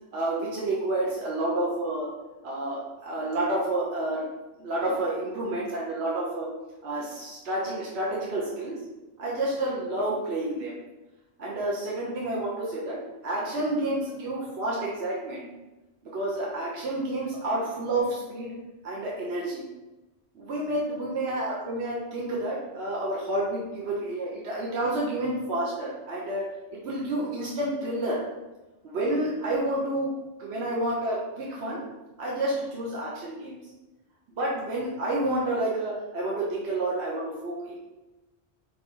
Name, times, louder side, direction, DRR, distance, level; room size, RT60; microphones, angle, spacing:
voice 1, 0.1-2.1 2.4-4.2 4.6-6.5 6.8-8.8 9.2-10.7 11.4-13.0 13.2-15.5 16.0-18.5 18.8-19.7 20.3-26.4 26.7-28.2 28.8-30.1 30.4-31.8 32.2-33.6 34.4-37.8, right 1 dB, 60° right, -4 dB, 1.1 m, -29 dB
5.2 x 2.5 x 3.8 m, 1.1 s
omnidirectional pair, 1.2 m